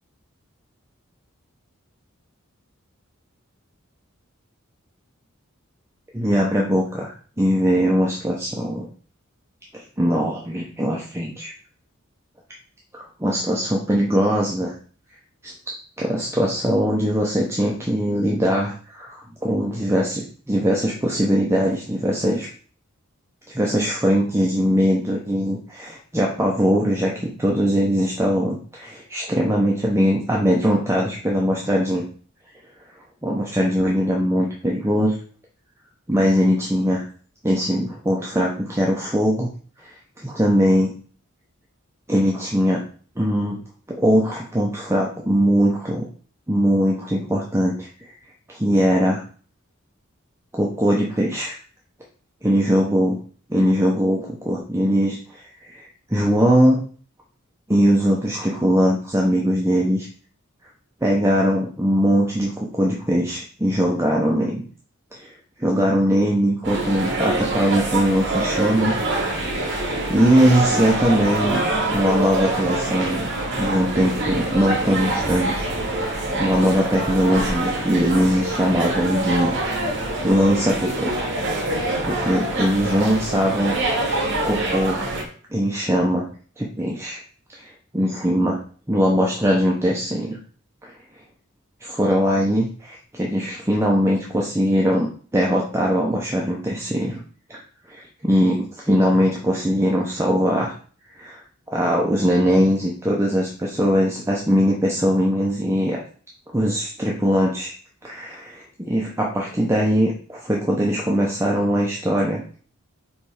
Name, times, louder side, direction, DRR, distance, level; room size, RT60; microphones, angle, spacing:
voice 1, 6.1-8.9 9.7-11.5 12.9-14.7 15.4-15.5 16.0-22.5 23.5-32.1 33.2-35.2 36.1-37.0 37.4-39.5 39.8-39.9 40.2-41.0 42.1-42.8 43.2-43.6 44.0-46.1 46.5-48.1 48.5-49.2 50.5-51.6 52.4-53.2 53.5-56.8 57.7-60.1 61.0-64.6 65.1-65.3 65.6-69.6 70.1-71.6 71.9-73.3 73.6-75.7 75.9-79.5 80.2-81.2 81.7-83.8 84.4-85.0 85.5-86.3 86.6-87.2 87.5-88.6 88.9-90.4 90.8-90.9 91.8-97.2 97.5-97.6 97.9-100.7 101.1-101.4 101.7-106.0 106.5-107.7 108.0-112.4, equal, 15° right, -2 dB, 0.9 m, -21 dB
sound 1, 66.6-85.2, right 2 dB, 55° right, 2.0 m, -25 dB
7.2 x 3.4 x 4.9 m, 0.43 s
head